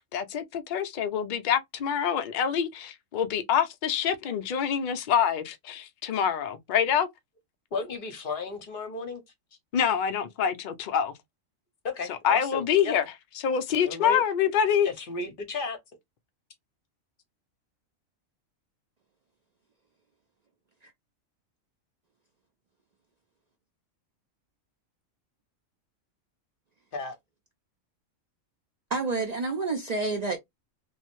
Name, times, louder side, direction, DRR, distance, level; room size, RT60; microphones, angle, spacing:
voice 1, 0.0-7.1 9.7-11.1 12.1-13.0 13.4-14.9, left 8 dB, 65° left, 0.5 m, -26 dB
voice 2, 7.7-9.2 11.8-12.9 13.8-14.2 14.8-15.8 26.9-27.2, left 4 dB, 50° left, 0.8 m, -33 dB
voice 3, 28.9-30.4, right 3 dB, 75° right, 0.3 m, -29 dB
3.1 x 2.0 x 2.9 m
omnidirectional pair, 1.4 m